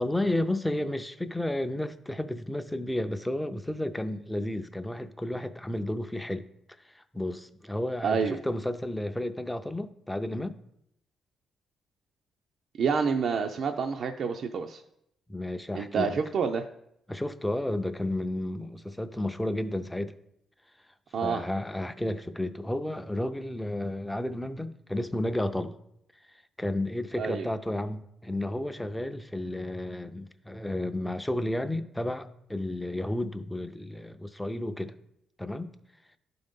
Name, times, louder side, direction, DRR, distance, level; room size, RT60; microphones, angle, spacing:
voice 1, 0.0-6.5 6.9-10.6 15.3-16.2 17.1-20.1 21.2-25.8 26.6-34.9 35.4-35.7, left 1 dB, 5° left, 0.5 m, -32 dB
voice 2, 8.0-8.4 12.8-14.8 15.7-16.6 21.1-21.4 27.2-27.5, right 6 dB, 60° right, 0.4 m, -28 dB
11.5 x 3.9 x 3.6 m
cardioid pair, 90°, 0 cm